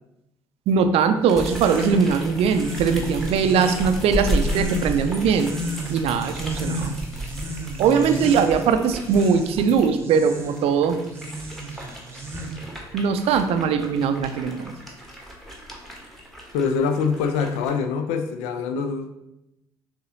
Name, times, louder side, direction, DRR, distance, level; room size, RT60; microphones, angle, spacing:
voice 1, 0.7-5.6 5.9-6.9 7.8-11.0 12.9-14.7, right 6 dB, 50° right, 8 dB, 0.5 m, -21 dB
sound 1, 1.3-9.9 10.5-17.8, equal, ahead, 1.1 m, -34 dB
sound 2, 1.3-12.8, right 1 dB, 20° right, 0.9 m, -34 dB
voice 2, 16.5-19.1, left 5 dB, 60° left, 7 dB, 0.4 m, -24 dB
6.6 x 2.8 x 2.7 m, 0.89 s
figure-of-eight pair, 50°, 13 cm